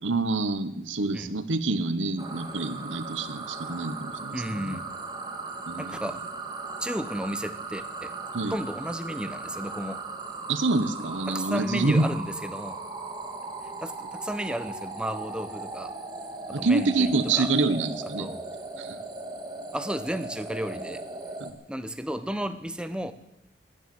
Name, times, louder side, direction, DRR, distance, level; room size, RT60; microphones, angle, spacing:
voice 1, 0.0-4.8 5.7-6.0 8.3-8.5 10.5-12.1 16.5-18.3 18.8-19.0 21.4-21.6, right 3 dB, 85° right, 12 dB, 1.2 m, -27 dB
sound 1, 2.2-21.5, right 3 dB, 20° right, 1.7 m, -38 dB
voice 2, 4.3-4.9 5.8-6.2 6.8-8.1 8.5-10.0 11.3-12.8 13.8-15.9 16.5-17.5 18.2-18.4 19.7-21.0 21.7-23.1, equal, 5° right, 10 dB, 0.8 m, -33 dB
17.5 x 10.5 x 7.8 m, 0.84 s
head